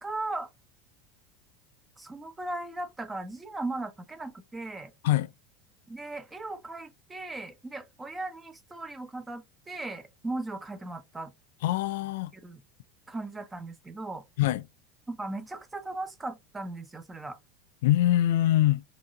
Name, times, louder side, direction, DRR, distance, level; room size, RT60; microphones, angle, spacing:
voice 1, 0.0-0.5 2.0-4.9 5.9-11.3 12.3-12.6 13.1-14.2 15.1-17.4, right 2 dB, 15° right, 0.9 m, -37 dB
voice 2, 11.6-12.3 14.4-14.7 17.8-18.8, left 14 dB, 75° left, 0.3 m, -23 dB
4.6 x 2.7 x 2.6 m
hypercardioid pair, 95°, 0 cm